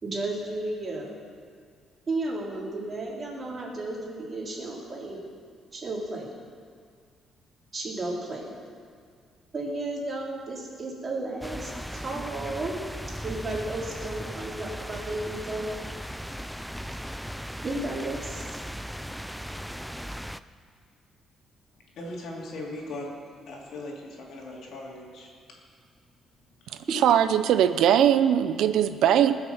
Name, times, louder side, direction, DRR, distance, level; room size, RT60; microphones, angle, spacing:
voice 1, 0.0-1.1 2.1-5.2 5.7-6.3 7.7-8.5 9.5-12.8 13.2-15.7 17.6-18.5 26.9-27.0, right 2 dB, 30° right, -3 dB, 3.5 m, -33 dB
sound 1, 11.4-20.4, equal, ahead, 0.4 m, -37 dB
voice 2, 21.9-23.2 23.5-25.3 26.6-26.8, left 1 dB, 65° left, -2 dB, 3.1 m, -39 dB
voice 3, 26.9-29.4, right 10 dB, 80° right, 11 dB, 0.6 m, -20 dB
20.0 x 6.8 x 7.2 m, 2.1 s
cardioid pair, 125°, 0 cm